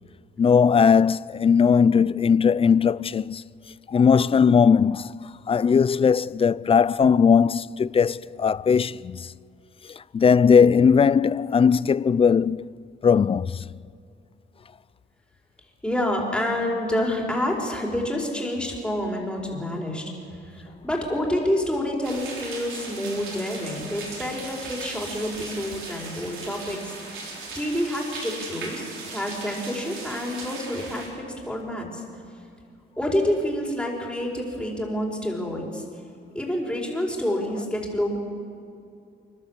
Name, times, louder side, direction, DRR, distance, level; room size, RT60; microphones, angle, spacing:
voice 1, 0.4-3.4 3.9-9.2 10.1-12.6 13.0-13.5, left 6 dB, 30° left, 0.4 m, -19 dB
voice 2, 15.8-20.0 20.5-27.2 27.5-32.0 33.0-35.8 36.3-38.2, left 1 dB, 5° left, 4.9 m, -28 dB
sound 1, 22.0-31.1, right 3 dB, 85° right, 3.9 m, -38 dB
29.0 x 12.0 x 7.4 m
cardioid pair, 90°, 20 cm